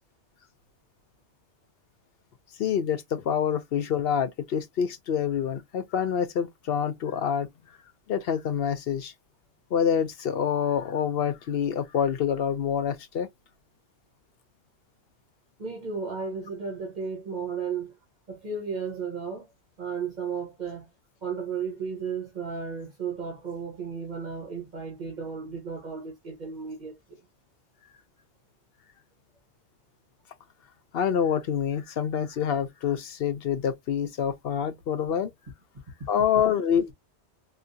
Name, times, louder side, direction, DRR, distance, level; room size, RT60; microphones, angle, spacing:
voice 1, 2.6-7.5 8.1-9.1 9.7-13.3 30.9-35.3 36.1-36.9, left 8 dB, 65° left, 0.7 m, -26 dB
voice 2, 15.6-17.9 18.3-19.5 19.8-20.9 21.2-27.2, right 5 dB, 40° right, 1.4 m, -34 dB
4.7 x 2.2 x 2.6 m
omnidirectional pair, 1.2 m